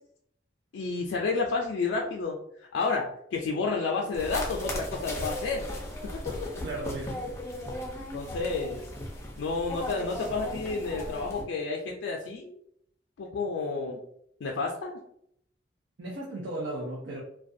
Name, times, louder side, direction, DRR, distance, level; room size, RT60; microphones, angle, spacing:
voice 1, 0.7-2.4 2.7-5.7 6.0-6.3 8.1-8.8 9.4-12.6 13.2-14.0 14.4-15.0, left 4 dB, 90° left, 0 dB, 0.3 m, -30 dB
sound 1, 4.1-11.4, left 1 dB, 15° left, 0.4 m, -37 dB
voice 2, 6.6-7.1 16.0-17.2, right 2 dB, 75° right, -3 dB, 0.5 m, -35 dB
2.3 x 2.2 x 2.5 m, 0.71 s
head